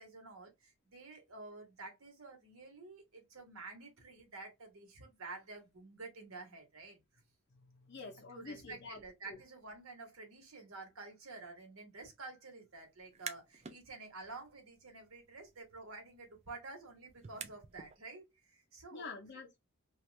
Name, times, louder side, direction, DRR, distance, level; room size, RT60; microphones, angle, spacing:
voice 1, 0.0-7.0 8.3-19.2, right 3 dB, 70° right, 1.2 m, -50 dB
voice 2, 7.6-9.0 9.3-9.4 18.9-19.6, left 4 dB, 50° left, 0.5 m, -48 dB
sound 1, 13.0-13.8 14.2-17.9, right 6 dB, 30° right, 0.3 m, -50 dB
2.8 x 2.4 x 3.1 m
head